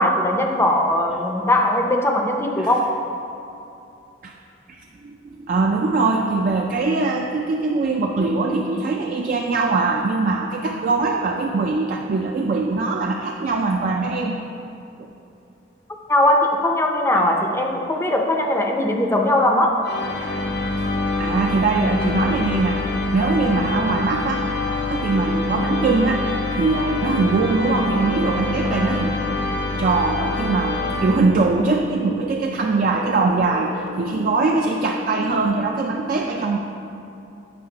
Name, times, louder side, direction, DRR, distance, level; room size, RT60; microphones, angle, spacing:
voice 1, 0.0-3.0 16.1-19.8, left 1 dB, 15° left, 2 dB, 0.5 m, -19 dB
voice 2, 5.0-14.3 20.8-22.9 23.1-24.4 24.9-26.3 26.5-29.1 29.7-36.6, right 3 dB, 50° right, 1 dB, 0.3 m, -22 dB
sound 1, 19.8-31.8, left 2 dB, 60° left, 0.6 m, -25 dB
sound 2, 28.0-35.5, left 1 dB, 75° right, 1.1 m, -37 dB
7.6 x 3.1 x 5.7 m, 2.8 s
head